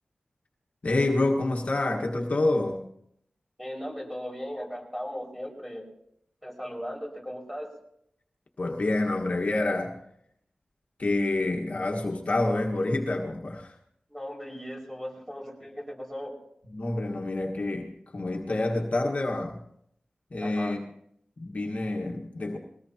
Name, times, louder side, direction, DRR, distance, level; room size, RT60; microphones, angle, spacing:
voice 1, 0.8-2.9 8.6-10.0 11.0-13.7 16.7-19.6 20.3-20.8 21.4-22.6, left 2 dB, 60° left, 0 dB, 1.6 m, -27 dB
voice 2, 3.6-5.8 6.4-7.7 14.1-16.3 20.4-20.8, equal, 5° right, -1 dB, 5.7 m, -37 dB
22.0 x 18.5 x 3.0 m, 0.72 s
wide cardioid pair, 85°, 3 cm